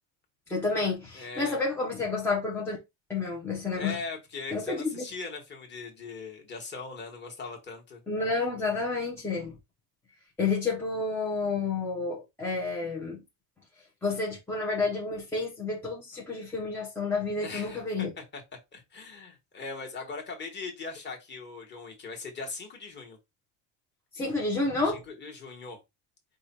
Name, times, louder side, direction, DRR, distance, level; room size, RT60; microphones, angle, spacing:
voice 1, 0.5-2.8 3.1-4.0 4.5-5.0 8.1-9.5 10.4-13.2 14.0-18.1 24.1-25.0, left 3 dB, 5° left, 0.5 m, -30 dB
voice 2, 1.1-1.6 3.8-8.0 17.4-18.1 18.3-18.4 18.7-23.2 24.8-25.8, left 4 dB, 25° left, 1.1 m, -40 dB
4.8 x 2.3 x 4.0 m
cardioid pair, 170°, 45 cm